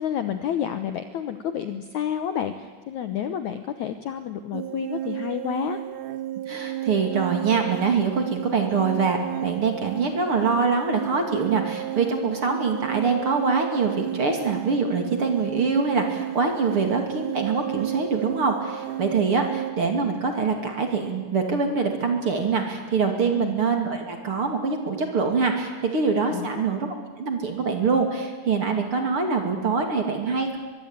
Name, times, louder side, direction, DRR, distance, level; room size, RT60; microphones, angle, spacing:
voice 1, 0.0-5.8 23.3-23.5 26.3-26.6, left 9 dB, 90° left, 9 dB, 1.6 m, -30 dB
sound 1, 4.5-19.7, right 13 dB, 70° right, 1.9 m, -33 dB
voice 2, 6.5-30.6, right 4 dB, 35° right, 4 dB, 2.8 m, -24 dB
23.5 x 23.0 x 9.0 m, 1.4 s
omnidirectional pair, 4.9 m